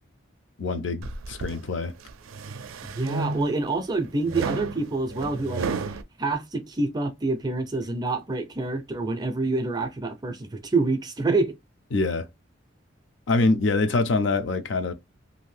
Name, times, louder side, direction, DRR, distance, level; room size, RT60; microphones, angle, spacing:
voice 1, 0.6-1.9 11.9-12.3 13.3-14.9, left 3 dB, 60° left, 0.4 m, -24 dB
sound 1, 1.0-1.6 2.1-3.7 4.3-6.0, right 4 dB, 85° right, 0.4 m, -32 dB
voice 2, 2.8-11.5, right 3 dB, 20° right, 0.4 m, -27 dB
2.7 x 2.5 x 3.2 m
head